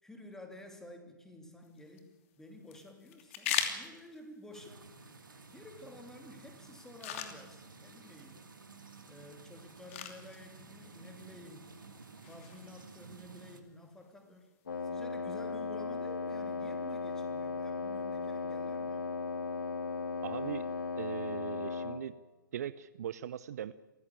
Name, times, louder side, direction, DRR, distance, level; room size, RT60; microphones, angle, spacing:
voice 1, 0.0-4.8 5.5-8.4 9.0-11.7 12.3-14.6 14.8-19.1, left 1 dB, 5° left, 5 dB, 3.0 m, -52 dB
sound 1, 1.6-14.6, left 8 dB, 40° left, 2.8 m, -44 dB
sound 2, 4.5-13.6, right 4 dB, 75° right, 2.6 m, -53 dB
Wind instrument woodwind instrument, 14.7-22.1, left 4 dB, 70° left, 2.0 m, -36 dB
voice 2, 20.2-20.7 21.0-22.2 22.5-23.7, right 10 dB, 50° right, 16 dB, 0.7 m, -39 dB
25.5 x 15.0 x 8.7 m, 1.1 s
figure-of-eight pair, 125°, 11 cm